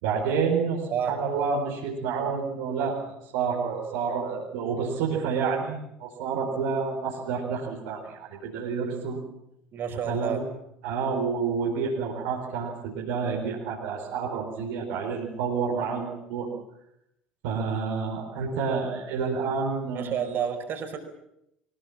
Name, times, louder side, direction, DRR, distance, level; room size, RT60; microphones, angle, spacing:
voice 1, 0.0-3.0 3.3-9.2 9.9-10.4 10.8-16.5 17.4-20.2, right 5 dB, 60° right, -2 dB, 4.7 m, -29 dB
voice 2, 9.7-10.4 19.9-21.0, right 8 dB, 45° right, 6 dB, 5.2 m, -30 dB
23.5 x 21.0 x 7.5 m, 0.83 s
figure-of-eight pair, 65°, 5 cm